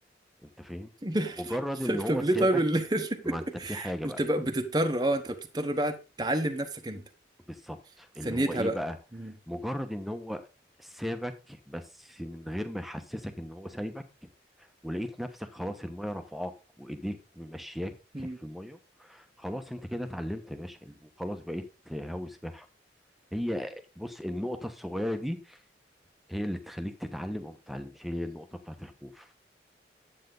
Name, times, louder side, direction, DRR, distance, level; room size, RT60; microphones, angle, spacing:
voice 1, 0.4-0.9 1.4-2.6 3.2-4.2 7.5-9.0 9.2-10.5 10.8-14.0 14.6-22.7 23.3-25.6 26.3-29.3, equal, ahead, 1.1 m, -36 dB
voice 2, 1.0-1.6 1.9-7.0 8.2-8.8 9.1-9.3 18.1-18.4, right 1 dB, 25° right, 1.1 m, -29 dB
10.5 x 8.3 x 3.9 m
head